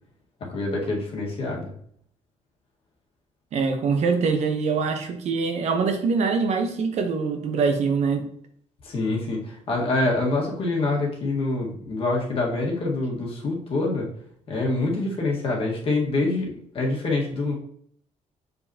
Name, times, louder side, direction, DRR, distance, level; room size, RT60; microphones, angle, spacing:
voice 1, 0.5-1.7 8.8-14.1 14.5-17.5, left 2 dB, 45° left, -1 dB, 1.6 m, -26 dB
voice 2, 3.5-8.3, right 5 dB, 55° right, 6 dB, 0.9 m, -24 dB
7.0 x 5.3 x 2.8 m, 0.64 s
cardioid pair, 160°, 13 cm